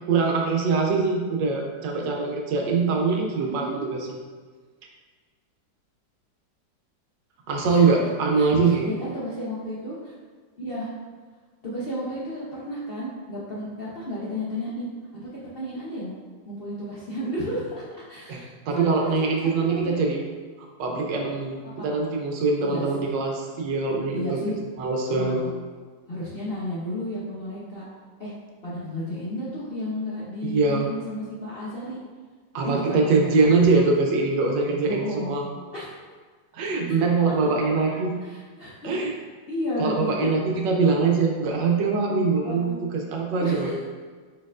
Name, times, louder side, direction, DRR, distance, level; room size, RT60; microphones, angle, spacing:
voice 1, 0.1-4.1 7.5-8.9 18.3-20.2 20.8-24.4 24.8-25.4 30.4-30.9 32.5-35.4 36.5-38.1 38.8-39.1 39.8-43.7, right 4 dB, 75° right, 1 dB, 1.3 m, -23 dB
voice 2, 3.4-3.9 7.6-7.9 8.3-10.1 10.6-10.9 11.6-14.9 15.5-16.1 16.5-17.7 18.1-19.1 19.4-20.1 21.6-21.9 22.6-23.1 24.1-24.6 25.2-25.5 26.1-27.8 28.2-28.3 28.6-32.0 32.6-33.7 34.8-35.4 35.7-36.0 36.9-37.0 37.4-37.5 37.9-38.9 39.5-40.3 42.3-42.8 43.3-43.8, equal, 70° left, -8 dB, 0.5 m, -33 dB
4.7 x 4.3 x 2.4 m, 1.5 s
omnidirectional pair, 2.0 m